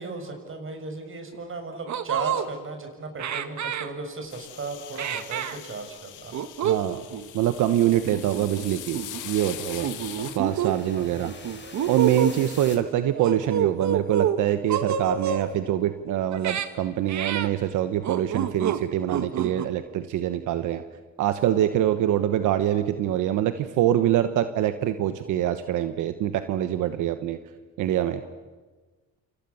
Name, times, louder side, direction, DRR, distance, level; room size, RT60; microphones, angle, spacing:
voice 1, 0.0-6.4 10.2-10.3 11.0-11.3 11.6-11.8 12.4-12.5, right 3 dB, 45° right, 5 dB, 7.0 m, -36 dB
sound 1, 1.3-1.4 1.9-2.5 3.2-3.9 5.0-5.6 6.3-6.8 7.1-7.3 8.1-8.6 8.9-9.2 9.8-10.7 11.2-12.3 13.1-14.4 14.7-15.5 16.3-16.7 17.1-17.5 18.0-18.8 19.1-19.7, right 9 dB, 65° right, 1.8 m, -28 dB
sound 2, 4.3-10.4, left 12 dB, 90° left, 2.2 m, -41 dB
voice 2, 6.6-7.1 7.3-9.9 10.3-11.3 11.9-20.8 21.2-27.4 27.8-28.2, right 12 dB, 90° right, 10 dB, 1.2 m, -24 dB
sound 3, 6.8-12.8, left 4 dB, 35° left, 4.9 m, -47 dB
29.5 x 28.0 x 7.2 m, 1.3 s
cardioid pair, 90°, 30 cm